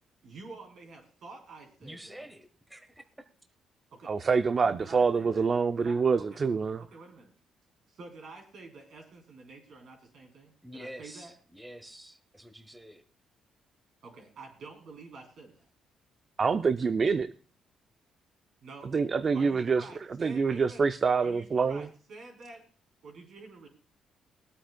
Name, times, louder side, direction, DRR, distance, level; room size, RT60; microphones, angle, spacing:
voice 1, 0.2-2.3 3.9-4.1 4.6-5.5 5.8-6.4 6.8-7.3 7.9-11.3 14.0-15.7 18.6-18.9 19.3-20.9 21.2-22.6 23.0-23.7, right 3 dB, 65° right, 2 dB, 3.7 m, -48 dB
voice 2, 1.8-3.1 10.6-13.0, equal, 10° right, 9 dB, 0.9 m, -47 dB
voice 3, 4.1-6.8 16.4-17.3 18.9-19.9 20.2-21.9, right 5 dB, 40° right, 11 dB, 0.4 m, -26 dB
22.0 x 8.7 x 2.3 m, 0.40 s
cardioid pair, 90°, 0 cm